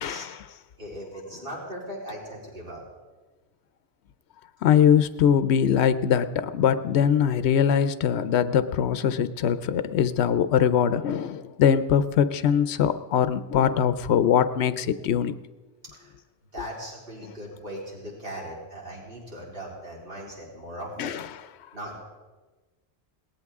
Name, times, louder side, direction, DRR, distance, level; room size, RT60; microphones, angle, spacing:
voice 1, 0.0-0.4 4.6-15.4 21.0-21.5, left 8 dB, 85° left, 12 dB, 0.9 m, -22 dB
voice 2, 0.8-2.8 15.9-16.1 16.5-21.2 21.7-22.0, equal, 60° right, -4 dB, 4.0 m, -38 dB
22.0 x 18.5 x 3.6 m, 1.3 s
omnidirectional pair, 1.1 m